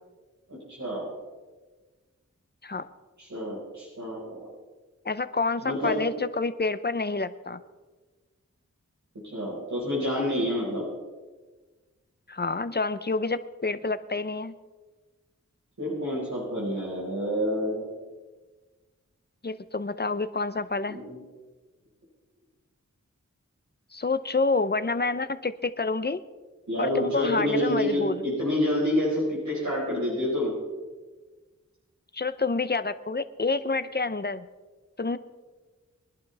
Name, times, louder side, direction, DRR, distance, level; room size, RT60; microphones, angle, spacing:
voice 1, 0.5-1.1 3.2-4.5 5.6-6.0 9.3-10.8 15.8-17.9 20.9-21.2 26.7-30.5, left 1 dB, 70° right, -6 dB, 5.1 m, -28 dB
voice 2, 5.0-7.6 12.3-14.5 19.4-21.0 23.9-26.2 26.8-28.3 32.1-34.4 35.0-35.2, left 3 dB, 35° left, 12 dB, 0.8 m, -28 dB
23.0 x 11.5 x 3.5 m, 1.3 s
wide cardioid pair, 50°, 30 cm